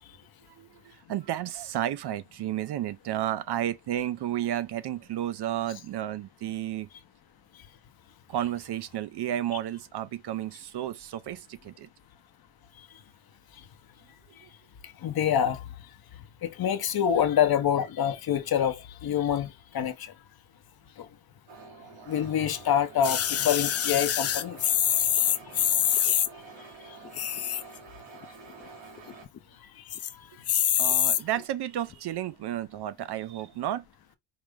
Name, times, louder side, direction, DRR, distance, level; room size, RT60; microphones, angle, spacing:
voice 1, 0.5-6.9 8.3-11.9 14.4-14.5 24.8-25.2 25.8-25.9 30.8-33.8, right 12 dB, 60° right, 0.5 m, -32 dB
voice 2, 15.0-15.6 16.4-20.1 21.0-21.1 22.1-24.7 29.8-29.9, left 9 dB, 50° left, 0.8 m, -26 dB
sound 1, 21.5-29.3, right 4 dB, 80° right, 1.6 m, -48 dB
sound 2, 23.0-26.3 27.0-27.8 28.2-28.3 28.5-28.6 29.0-29.4 29.9-30.1 30.5-31.2 31.9-32.0, left 10 dB, 35° left, 0.4 m, -25 dB
4.9 x 2.0 x 3.4 m
cardioid pair, 100°, 46 cm